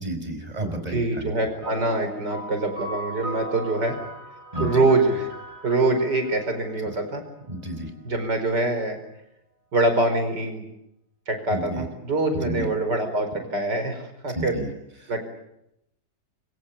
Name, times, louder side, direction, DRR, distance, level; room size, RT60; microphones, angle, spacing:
voice 1, 0.0-1.3 4.5-4.9 7.5-7.9 11.5-11.9 12.3-12.6 14.3-14.7 15.0-15.1, right 1 dB, 20° right, 7 dB, 5.0 m, -31 dB
voice 2, 0.9-4.0 4.6-5.3 5.6-7.2 8.0-9.0 9.7-10.6 11.3-14.6 15.1-15.2, right 2 dB, 85° right, 7 dB, 5.4 m, -24 dB
sound 1, 1.6-7.4, right 1 dB, 55° right, 8.7 m, -37 dB
26.5 x 24.0 x 8.5 m, 0.82 s
omnidirectional pair, 1.8 m